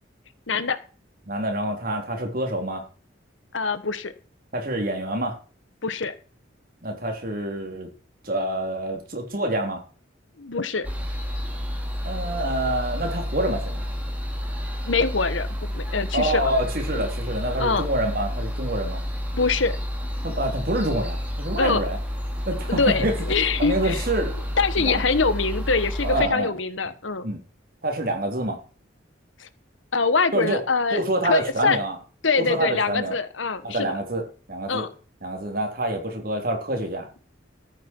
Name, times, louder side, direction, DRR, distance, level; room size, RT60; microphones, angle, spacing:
voice 1, 0.5-0.8 3.5-4.1 5.8-6.1 10.4-10.9 14.9-16.5 16.9-17.0 17.6-17.9 19.3-19.8 21.6-21.8 22.7-24.0 24.6-27.3 29.4-29.5 29.9-31.8 32.2-33.9 34.7-34.9, left 4 dB, 85° left, 13 dB, 1.3 m, -24 dB
voice 2, 1.3-2.8 4.5-5.4 6.8-7.9 8.2-9.8 12.0-13.9 16.1-19.0 20.2-22.0 22.5-23.1 23.6-24.3 24.8-25.0 26.0-26.5 27.2-27.4 27.8-28.6 30.3-30.6 30.9-32.0 32.4-33.2 33.6-34.9 35.2-37.1, right 1 dB, 50° right, 3 dB, 3.5 m, -27 dB
sound 1, 10.8-26.3, equal, 10° right, 2.8 m, -30 dB
13.5 x 9.3 x 4.6 m, 0.37 s
head